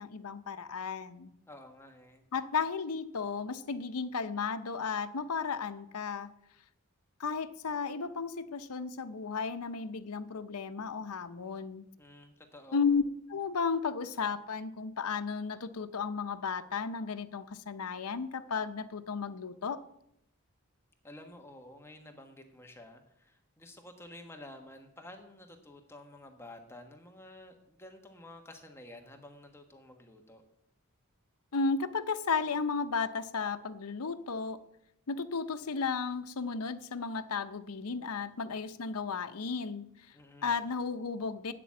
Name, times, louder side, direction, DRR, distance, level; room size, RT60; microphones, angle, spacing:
voice 1, 0.0-1.3 2.3-6.3 7.2-11.9 12.7-13.0 13.3-19.8 31.5-34.6 35.1-40.1 40.4-41.5, left 5 dB, 90° left, 10 dB, 0.7 m, -34 dB
voice 2, 1.5-2.3 12.0-12.8 21.0-30.4 40.1-40.7, left 1 dB, 10° left, 4 dB, 1.2 m, -51 dB
8.5 x 6.9 x 8.5 m, 0.77 s
head